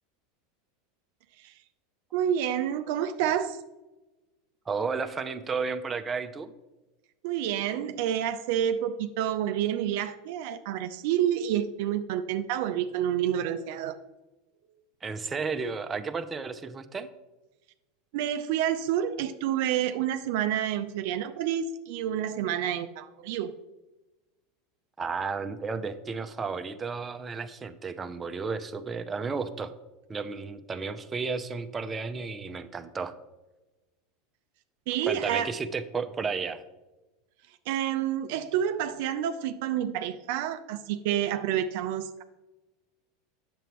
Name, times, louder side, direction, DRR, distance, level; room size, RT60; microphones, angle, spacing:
voice 1, 2.1-3.6 7.2-14.0 18.1-23.5 34.9-35.5 37.7-42.2, right 10 dB, 65° right, 8 dB, 0.4 m, -29 dB
voice 2, 4.7-6.5 15.0-17.1 25.0-29.7 30.1-33.1 35.1-36.6, right 5 dB, 25° right, 8 dB, 0.6 m, -33 dB
9.0 x 6.9 x 3.1 m, 1.1 s
hypercardioid pair, 90°, 0 cm